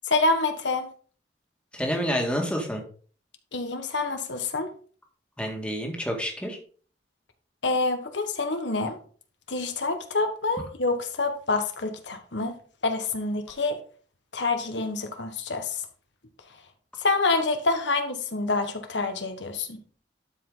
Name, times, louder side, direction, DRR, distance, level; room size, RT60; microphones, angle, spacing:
voice 1, 0.0-0.9 3.5-4.7 7.6-9.0 9.5-12.5 12.8-13.8 14.3-15.8 17.0-19.8, left 3 dB, 80° left, 1.4 m, -27 dB
voice 2, 1.7-2.8 5.4-6.6, equal, 5° left, 1.9 m, -28 dB
12.0 x 5.1 x 3.9 m
head